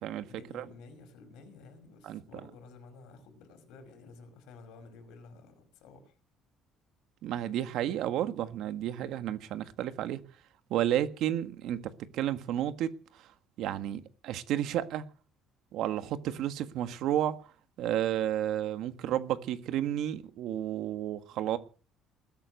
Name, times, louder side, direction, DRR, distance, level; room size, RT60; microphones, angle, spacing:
voice 1, 0.2-6.2 10.9-11.1, left 4 dB, 75° left, 8 dB, 5.3 m, -52 dB
voice 2, 7.2-10.2 10.7-12.9 13.1-13.3 13.6-15.0 15.7-17.4 17.8-21.6, right 11 dB, 65° right, 10 dB, 1.6 m, -31 dB
20.5 x 9.3 x 6.5 m, 0.38 s
cardioid pair, 155°, 0 cm